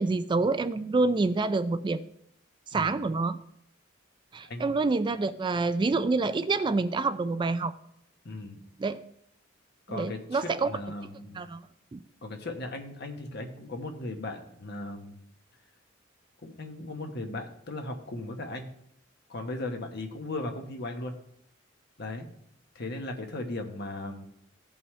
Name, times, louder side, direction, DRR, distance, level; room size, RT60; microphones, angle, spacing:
voice 1, 0.0-2.0 2.7-3.4 4.3-7.7 8.8-9.0 9.9-10.7 11.4-11.6 11.9-12.0, right 3 dB, 25° right, 11 dB, 0.3 m, -27 dB
voice 2, 8.2-8.6 9.9-11.4 12.2-15.2 16.4-18.7 19.3-21.1 22.0-22.3 22.7-24.3, left 2 dB, 55° left, 4 dB, 1.2 m, -37 dB
15.5 x 5.4 x 3.2 m, 0.69 s
head